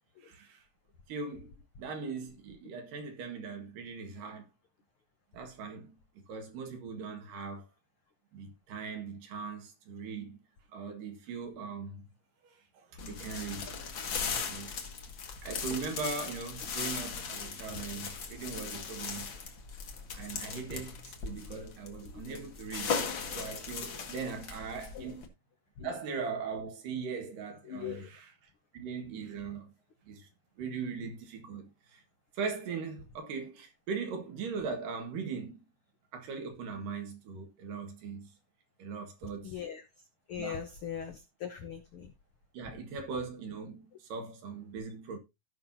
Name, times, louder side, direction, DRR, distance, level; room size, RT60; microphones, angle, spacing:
voice 1, 0.2-0.6 1.1-4.5 5.3-7.6 8.3-10.4 10.7-12.1 12.4-13.7 14.5-14.8 15.4-19.3 20.1-23.0 23.3-25.3 25.8-28.3 28.7-29.7 30.1-30.3 30.6-32.0 32.3-35.6 36.1-38.3 38.8-39.6 40.4-40.6 42.5-45.2, right 5 dB, 80° right, 3.3 m, -40 dB
sound 1, 13.0-25.3, left 5 dB, 50° left, 1.6 m, -38 dB
voice 2, 22.0-22.4 24.9-25.1 25.8-25.9 27.6-28.1 39.4-39.8 40.3-42.1, left 8 dB, 75° left, 1.2 m, -40 dB
16.0 x 5.6 x 2.7 m
omnidirectional pair, 3.8 m